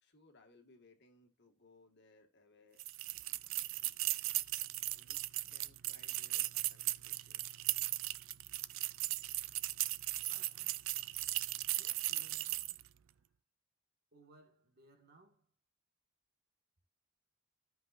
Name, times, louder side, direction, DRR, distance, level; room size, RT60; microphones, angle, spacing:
voice 1, 0.0-2.8 4.3-4.6 4.9-5.2 5.5-7.9, left 2 dB, 50° left, 1.7 m, -65 dB
sound 1, 2.8-12.9, right 17 dB, 60° right, 0.4 m, -37 dB
voice 2, 10.3-10.8 11.7-12.7 13.1-13.2 14.1-15.5, right 2 dB, 45° right, 1.8 m, -64 dB
14.5 x 5.5 x 2.5 m
head